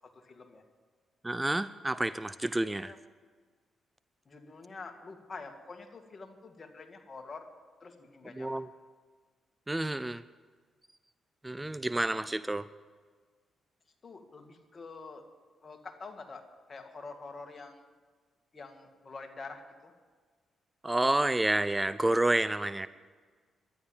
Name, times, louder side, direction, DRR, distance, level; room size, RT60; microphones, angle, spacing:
voice 1, 0.0-0.6 2.8-3.0 4.3-7.5 7.8-8.6 14.0-15.3 15.6-16.4 16.7-17.8 18.5-19.9 22.8-22.9, left 4 dB, 45° left, 5 dB, 2.1 m, -46 dB
voice 2, 1.2-2.9 8.4-8.7 9.7-10.2 11.4-12.7 20.8-22.9, right 1 dB, 15° right, 15 dB, 0.5 m, -29 dB
11.5 x 10.5 x 9.1 m, 1.5 s
supercardioid pair, 55°, 0 cm